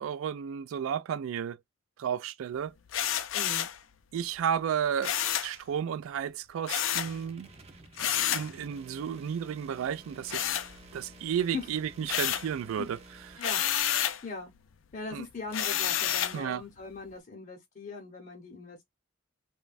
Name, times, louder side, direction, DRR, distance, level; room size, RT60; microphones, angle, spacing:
voice 1, 0.0-1.6 2.0-2.7 4.1-5.2 5.4-7.5 8.0-10.4 10.9-13.0 13.3-13.4 15.1-15.2 16.3-16.6, right 8 dB, 85° right, 0.3 m, -32 dB
sound 1, 2.9-3.8 5.0-5.5 6.7-7.1 8.0-8.5 10.3-11.1 11.5-12.5 13.4-14.2 15.5-16.4, left 10 dB, 70° left, 0.4 m, -29 dB
voice 2, 3.3-3.7 11.5-11.7 13.4-14.5 14.9-18.8, left 3 dB, 40° left, 0.7 m, -40 dB
sound 2, 6.9-13.4, right 2 dB, 30° right, 0.5 m, -52 dB
3.0 x 2.2 x 2.4 m
head